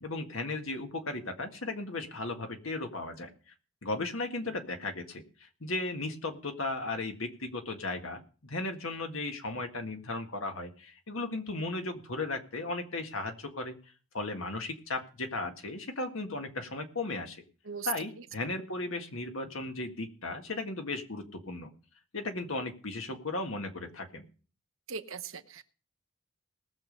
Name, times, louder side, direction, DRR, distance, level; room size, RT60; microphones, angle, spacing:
voice 1, 0.0-3.3 3.8-13.8 14.1-17.4 17.9-21.7 22.1-24.3, left 2 dB, 75° left, 5 dB, 1.8 m, -36 dB
voice 2, 24.9-25.6, right 6 dB, 75° right, 8 dB, 1.0 m, -39 dB
19.5 x 6.9 x 5.3 m, 0.39 s
head